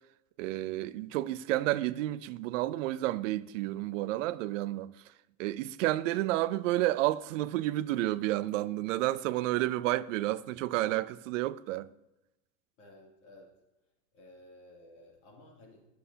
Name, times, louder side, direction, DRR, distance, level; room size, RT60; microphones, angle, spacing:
voice 1, 0.4-4.9 5.4-11.9, right 16 dB, 80° right, 0.5 m, -30 dB
voice 2, 12.8-13.5 14.1-15.8, left 1 dB, 55° left, 2.7 m, -55 dB
11.0 x 6.9 x 2.8 m
supercardioid pair, 170°, 38 cm